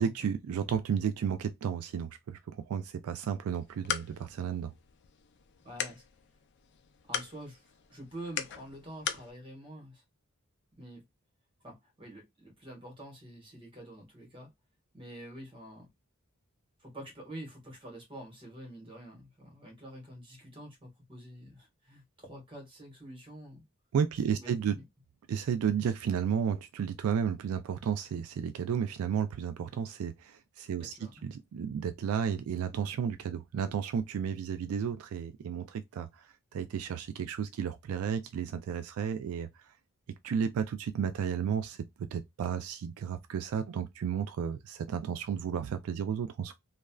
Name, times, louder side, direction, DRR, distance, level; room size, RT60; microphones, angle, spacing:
voice 1, 0.0-4.7 23.9-24.8 25.3-30.9 31.2-39.6 40.2-46.5, right 7 dB, 80° right, 0.3 m, -33 dB
sound 1, 3.5-9.3, left 9 dB, 55° left, 0.4 m, -40 dB
voice 2, 5.6-6.0 7.0-10.0 10.7-11.0 11.6-14.5 14.9-15.9 16.8-23.6 24.4-24.8 30.8-31.3, right 1 dB, 25° right, 1.4 m, -47 dB
3.1 x 2.4 x 2.2 m
head